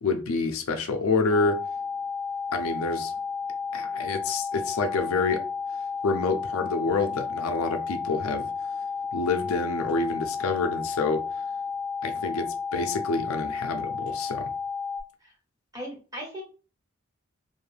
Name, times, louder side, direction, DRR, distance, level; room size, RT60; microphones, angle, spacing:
voice 1, 0.0-1.6 2.5-3.1 3.7-5.4 6.0-8.5 9.1-11.2 12.0-14.5, left 4 dB, 80° left, 0.5 m, -27 dB
sound 1, 1.3-15.0, left 5 dB, 35° right, 0.5 m, -32 dB
voice 2, 15.7-16.4, equal, 15° right, 1.1 m, -37 dB
2.6 x 2.3 x 3.2 m
head